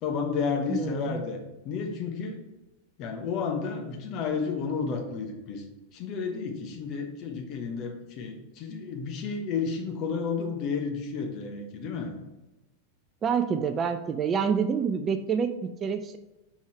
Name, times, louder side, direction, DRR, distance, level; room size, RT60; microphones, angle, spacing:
voice 1, 0.0-1.4 1.6-2.4 3.0-5.6 5.9-12.1, left 5 dB, 40° left, 4 dB, 1.0 m, -31 dB
voice 2, 0.7-1.2 13.2-16.2, right 6 dB, 25° right, 9 dB, 0.4 m, -27 dB
5.5 x 4.7 x 4.4 m, 1.0 s
figure-of-eight pair, 90°, 0 cm